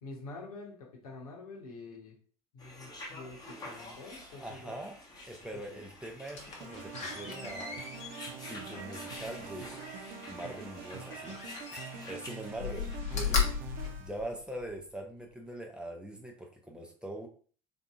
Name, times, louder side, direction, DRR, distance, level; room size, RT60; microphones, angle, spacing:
voice 1, 0.0-2.2 2.5-4.8 5.5-5.8, left 3 dB, 75° left, -1 dB, 1.0 m, -47 dB
sound 1, 2.6-13.0, left 1 dB, 20° left, 1.1 m, -48 dB
voice 2, 4.3-5.0 5.3-7.8 8.5-11.4 11.7-17.3, right 1 dB, 5° right, 1 dB, 0.7 m, -43 dB
Slam, 6.2-10.1 11.2-12.1 12.5-14.8 15.3-15.4, left 6 dB, 40° left, 0.9 m, -36 dB
sound 2, 6.6-14.2, right 5 dB, 50° right, 0.5 m, -45 dB
4.0 x 2.7 x 2.4 m, 0.43 s
figure-of-eight pair, 65°, 19 cm